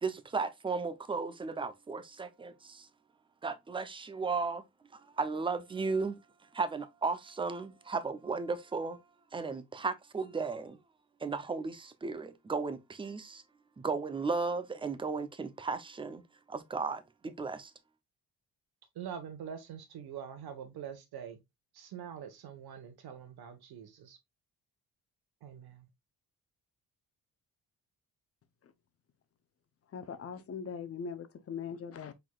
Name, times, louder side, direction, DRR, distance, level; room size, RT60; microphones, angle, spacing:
voice 1, 0.0-2.9 3.4-4.6 4.9-6.2 6.5-9.0 9.3-10.8 11.2-13.4 13.8-16.2 16.5-17.7, right 4 dB, 15° right, 0.5 m, -35 dB
voice 2, 18.9-21.4 21.7-24.2 25.4-25.9, right 8 dB, 75° right, 1.2 m, -44 dB
voice 3, 29.9-32.1, left 6 dB, 40° left, 0.7 m, -41 dB
4.7 x 4.0 x 2.3 m
cardioid pair, 105°, 38 cm